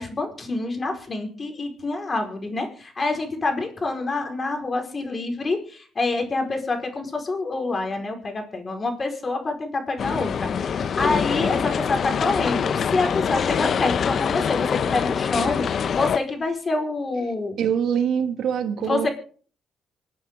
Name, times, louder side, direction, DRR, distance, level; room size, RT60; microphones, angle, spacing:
voice 1, 0.0-15.6 15.9-17.6 18.8-19.1, left 3 dB, 35° left, 4.8 m, -27 dB
sound 1, 10.0-16.2, left 7 dB, 55° left, 0.8 m, -24 dB
voice 2, 17.6-19.1, right 8 dB, 75° right, 2.3 m, -24 dB
26.0 x 9.2 x 3.8 m
cardioid pair, 90°, 0 cm